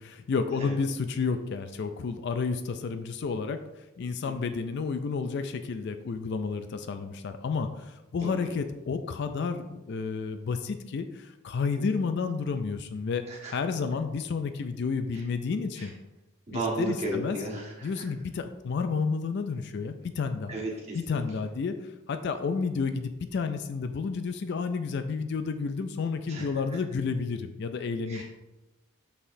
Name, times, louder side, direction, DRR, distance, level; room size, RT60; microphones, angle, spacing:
voice 1, 0.0-3.6 4.0-15.9 16.5-17.4 17.8-20.5 20.9-21.8 22.1-28.2, left 5 dB, 50° left, 9 dB, 0.3 m, -31 dB
voice 2, 8.2-8.5 11.8-12.0 13.3-13.5 15.1-15.2 15.8-15.9 16.5-18.0 20.5-21.2 26.3-26.5 28.1-28.2, right 2 dB, 30° right, -4 dB, 1.5 m, -35 dB
6.4 x 5.6 x 2.6 m, 1.0 s
head